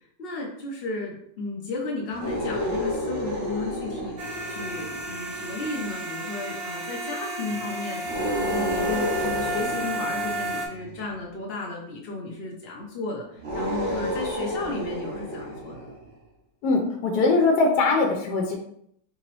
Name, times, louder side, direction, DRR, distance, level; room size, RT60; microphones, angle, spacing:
voice 1, 0.2-4.1 4.5-8.0 8.4-15.8, left 3 dB, 65° left, -2 dB, 0.6 m, -34 dB
sound 1, 2.1-5.7 8.0-11.1 13.4-16.1, equal, 85° right, 1.5 m, -31 dB
sound 2, 4.2-10.7, right 1 dB, 50° right, 1.0 m, -32 dB
voice 2, 16.6-18.6, left 3 dB, 80° left, 2 dB, 1.2 m, -21 dB
3.7 x 2.9 x 3.0 m, 0.70 s
omnidirectional pair, 1.8 m